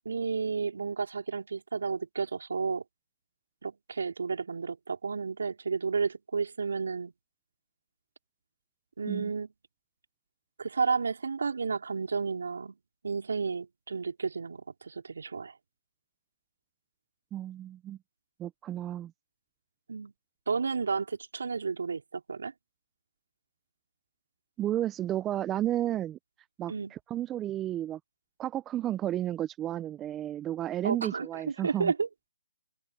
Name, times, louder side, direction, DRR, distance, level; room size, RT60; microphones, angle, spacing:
voice 1, 0.1-2.8 3.6-7.1 9.0-9.5 10.6-12.7 13.0-15.5 19.9-20.1 20.5-22.5 26.7-26.9 30.8-32.3, right 5 dB, 70° right, 3.9 m, -32 dB
voice 2, 17.3-18.0 18.4-19.1 24.6-26.2 26.6-28.0 28.4-31.9, right 12 dB, 15° right, 0.9 m, -32 dB
open air
hypercardioid pair, 150°, 0 cm